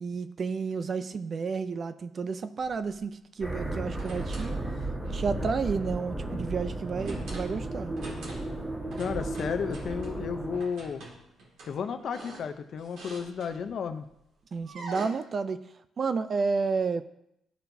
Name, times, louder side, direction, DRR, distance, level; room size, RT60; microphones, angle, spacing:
voice 1, 0.0-4.6 5.1-8.0 14.5-15.6 16.0-17.0, right 5 dB, 45° right, 12 dB, 0.4 m, -31 dB
sound 1, 2.6-3.0 3.7-4.6 5.0-5.3 7.0-7.6 7.9-8.6 8.9-10.1 10.5-13.8 14.6-15.0, right 2 dB, 80° right, 2.1 m, -45 dB
sound 2, 3.4-10.6, right 2 dB, 20° right, 2.1 m, -34 dB
voice 2, 9.0-11.0 11.7-14.0, left 6 dB, 60° left, 9 dB, 0.6 m, -33 dB
12.5 x 4.4 x 2.7 m, 0.79 s
cardioid pair, 90°, 0 cm